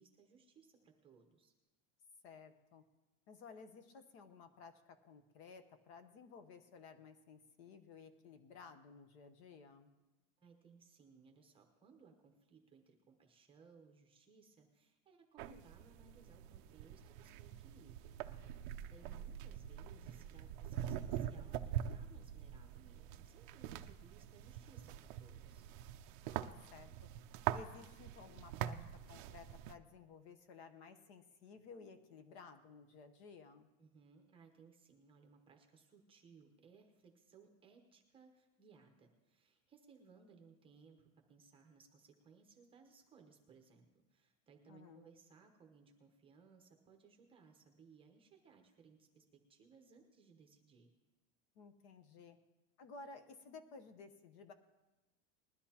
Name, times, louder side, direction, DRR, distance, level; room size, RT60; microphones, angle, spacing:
voice 1, 0.0-1.5 10.4-25.6 33.8-50.9, right 5 dB, 15° right, 3 dB, 0.8 m, -64 dB
voice 2, 2.2-2.8 3.3-9.9 26.2-27.1 27.5-33.7 44.7-45.1 51.5-52.4 52.8-54.5, left 4 dB, 50° left, 9 dB, 1.1 m, -56 dB
sound 1, 15.4-29.7, right 11 dB, 40° right, 0.5 m, -44 dB
20.5 x 12.5 x 2.9 m, 1.1 s
supercardioid pair, 175°, 40 cm